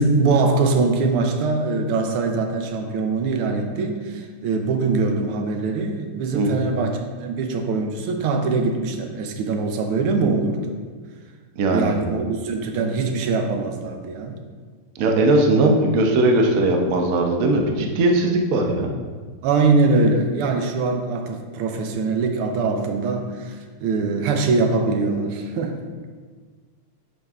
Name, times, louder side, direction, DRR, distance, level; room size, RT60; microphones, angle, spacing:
voice 1, 0.0-10.8 11.7-14.4 19.4-25.8, right 3 dB, 80° right, 4 dB, 1.6 m, -22 dB
voice 2, 11.6-11.9 15.0-18.9, right 2 dB, 65° right, 2 dB, 0.8 m, -19 dB
10.5 x 5.4 x 2.4 m, 1.5 s
omnidirectional pair, 2.4 m